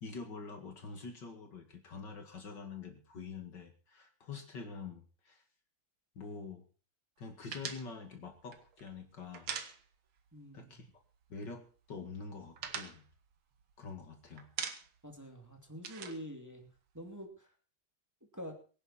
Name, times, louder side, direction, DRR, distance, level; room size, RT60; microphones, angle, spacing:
voice 1, 0.0-5.4 6.2-6.6 7.2-9.6 10.5-10.9 11.3-13.1 13.8-14.5, left 4 dB, 60° left, 5 dB, 2.7 m, -46 dB
sound 1, 7.5-10.3 10.6-10.7 11.0-11.7 12.1-14.0 14.4-15.1 15.4-17.2, right 7 dB, 90° right, 2.3 m, -43 dB
voice 2, 10.3-10.8 15.0-16.7 16.9-17.5 18.3-18.5, equal, 10° right, 2 dB, 2.6 m, -46 dB
23.5 x 10.0 x 4.3 m, 0.39 s
omnidirectional pair, 2.2 m